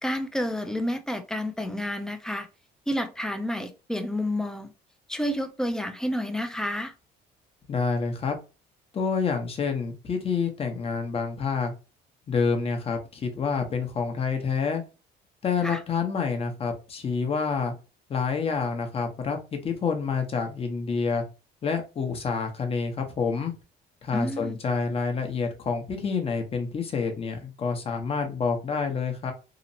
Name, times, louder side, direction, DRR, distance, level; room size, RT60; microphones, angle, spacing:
voice 1, 0.0-2.5 2.9-4.7 5.1-6.9 15.6-15.8 24.1-24.6, equal, 5° left, 0.4 m, -30 dB
voice 2, 7.7-8.4 8.9-11.7 12.3-14.8 15.4-17.7 18.1-21.2 21.6-23.5 24.0-29.3, left 5 dB, 35° left, 0.7 m, -28 dB
2.8 x 2.0 x 2.6 m
cardioid pair, 110°, 17 cm